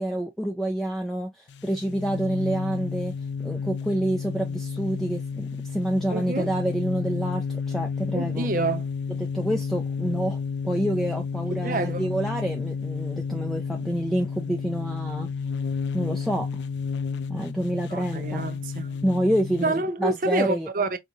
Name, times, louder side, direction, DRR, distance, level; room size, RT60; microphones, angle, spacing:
voice 1, 0.0-3.1 3.4-8.5 9.1-10.4 10.6-15.3 15.9-16.6 17.3-18.5 19.0-20.7, right 1 dB, ahead, 0.5 m, -28 dB
sound 1, 1.5-19.7, left 5 dB, 80° left, 0.4 m, -31 dB
voice 2, 6.1-6.5 8.1-8.8 11.5-12.0 17.9-18.8 19.6-21.0, right 3 dB, 50° right, 0.6 m, -27 dB
4.7 x 2.8 x 2.7 m
head